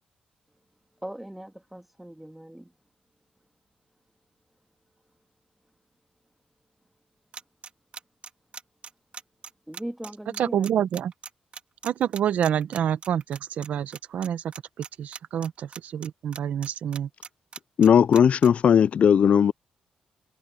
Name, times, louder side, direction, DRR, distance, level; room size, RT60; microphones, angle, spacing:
voice 1, 1.0-2.7 9.7-10.6, right 1 dB, 5° right, 2.1 m, -39 dB
sound 1, 7.3-13.7 13.9-14.3 14.5-16.1 16.3-18.5, right 6 dB, 50° right, 2.2 m, -40 dB
voice 2, 10.4-11.1 11.8-14.4 14.8-17.1, right 9 dB, 80° right, 1.0 m, -27 dB
voice 3, 17.8-19.5, left 8 dB, 60° left, 0.3 m, -17 dB
cardioid pair, 95°, 3 cm